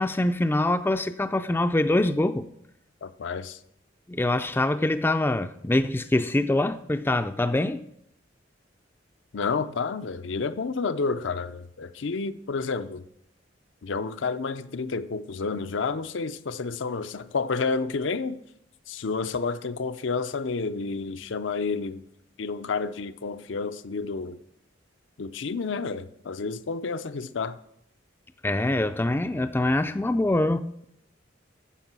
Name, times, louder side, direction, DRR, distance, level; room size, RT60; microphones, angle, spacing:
voice 1, 0.0-2.5 4.1-7.8 28.4-30.7, left 1 dB, 10° left, 0.3 m, -24 dB
voice 2, 3.0-3.6 9.3-13.0 13.8-18.4 18.9-22.0 22.4-24.4 25.2-27.6, left 4 dB, 75° left, 0.5 m, -30 dB
9.9 x 7.4 x 6.1 m
head